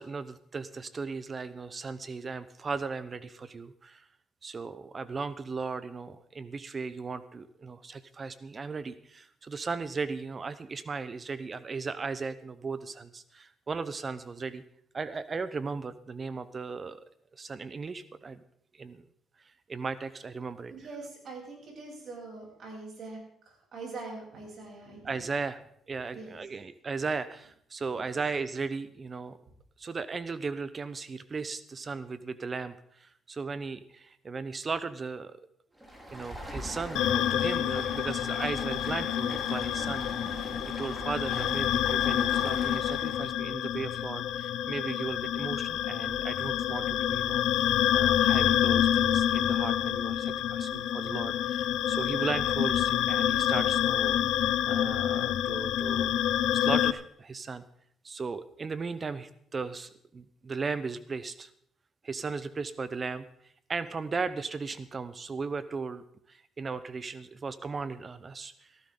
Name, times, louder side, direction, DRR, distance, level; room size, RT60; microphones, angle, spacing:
voice 1, 0.0-4.1 4.4-14.6 14.9-17.0 17.3-18.4 18.7-19.0 19.4-20.7 25.0-25.6 25.9-29.4 29.8-35.4 36.1-40.3 40.8-56.1 56.5-57.6 58.0-61.5 62.0-68.8, right 4 dB, 35° right, 14 dB, 0.7 m, -37 dB
voice 2, 20.7-23.2 23.5-25.2 26.1-26.4 27.9-28.1, right 3 dB, 55° right, -2 dB, 7.9 m, -43 dB
Stream, 35.7-43.3, equal, 15° right, 4.9 m, -42 dB
sound 1, 37.0-56.9, left 11 dB, 85° left, 0.5 m, -27 dB
16.5 x 14.5 x 3.8 m, 0.69 s
cardioid pair, 90°, 0 cm